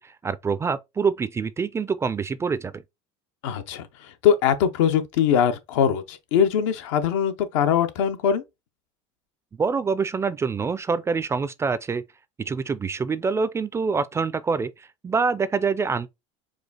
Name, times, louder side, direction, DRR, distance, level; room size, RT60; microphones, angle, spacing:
voice 1, 0.0-2.8 9.6-12.0 12.4-16.1, right 5 dB, 20° right, 0.3 m, -26 dB
voice 2, 3.4-8.4, left 8 dB, 85° left, 0.8 m, -22 dB
4.8 x 2.4 x 4.0 m
supercardioid pair, 115°, 15 cm